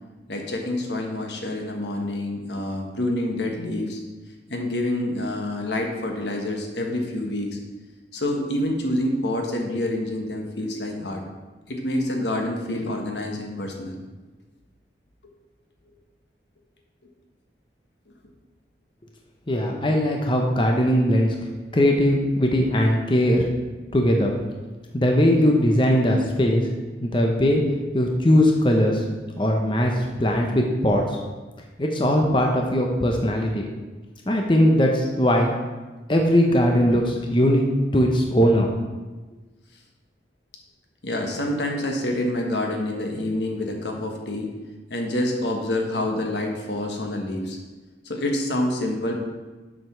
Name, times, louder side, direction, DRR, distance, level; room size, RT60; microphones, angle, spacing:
voice 1, 0.3-4.0 4.5-7.6 8.1-11.2 11.7-14.0 41.0-44.5 44.9-47.6 48.0-49.2, left 1 dB, 75° left, 2 dB, 1.4 m, -27 dB
voice 2, 19.5-21.3 21.7-23.4 23.9-24.3 24.9-26.7 27.0-27.6 27.9-29.0 29.4-31.2 31.8-33.6 34.3-35.5 36.1-37.6 37.9-38.7, equal, 25° left, 1 dB, 0.8 m, -20 dB
7.7 x 5.1 x 6.1 m, 1.2 s
head